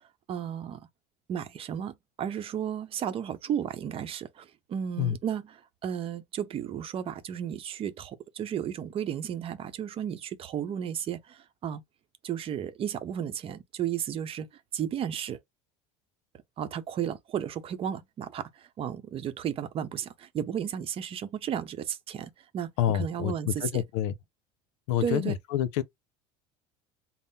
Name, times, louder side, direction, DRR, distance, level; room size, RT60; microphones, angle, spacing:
voice 1, 0.3-0.8 1.3-11.8 12.2-14.5 14.7-15.4 16.6-18.5 18.8-23.8 25.0-25.4, right 9 dB, 40° right, 0.7 m, -33 dB
voice 2, 22.8-24.1 24.9-25.8, left 11 dB, 80° left, 0.6 m, -28 dB
3.6 x 2.0 x 4.1 m
supercardioid pair, 110°, 15 cm